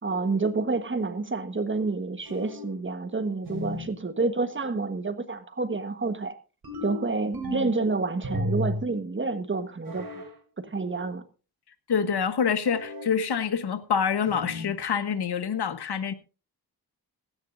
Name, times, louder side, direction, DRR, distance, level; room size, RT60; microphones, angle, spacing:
voice 1, 0.0-6.3 6.8-10.0 10.6-11.2, right 3 dB, 30° right, 1.4 m, -29 dB
sound 1, 2.3-2.8 3.5-4.0 6.6-7.8 8.2-8.9 9.8-10.3 12.6-13.2 14.3-14.8, left 1 dB, 70° right, 5.4 m, -34 dB
voice 2, 11.9-16.1, left 7 dB, 85° left, 1.2 m, -26 dB
16.5 x 14.0 x 2.6 m
wide cardioid pair, 115°, 39 cm